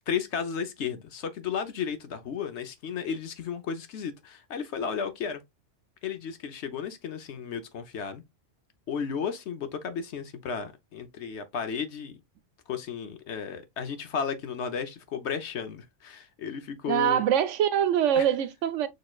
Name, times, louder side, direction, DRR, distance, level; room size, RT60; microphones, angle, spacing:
voice 1, 0.1-5.4 6.0-8.2 8.9-12.2 12.7-17.2 18.2-18.3, left 7 dB, 65° left, 1.0 m, -33 dB
voice 2, 16.9-18.9, right 10 dB, 75° right, 0.9 m, -24 dB
6.5 x 3.1 x 2.4 m
omnidirectional pair, 1.3 m